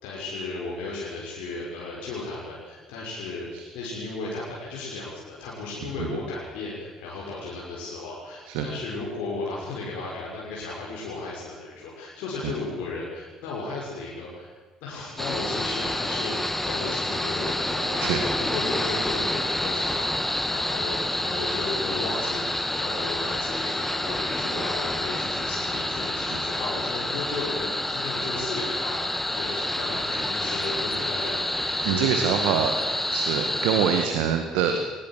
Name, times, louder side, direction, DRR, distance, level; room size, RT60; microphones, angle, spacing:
voice 1, 0.0-32.8 33.4-33.7, left 3 dB, 65° left, -5 dB, 6.2 m, -35 dB
sound 1, 15.2-34.1, left 1 dB, 10° left, 2.1 m, -28 dB
voice 2, 31.8-32.7 33.1-34.8, right 8 dB, 70° right, 6 dB, 1.9 m, -25 dB
23.0 x 20.0 x 7.7 m, 1.4 s
figure-of-eight pair, 50°, 2 cm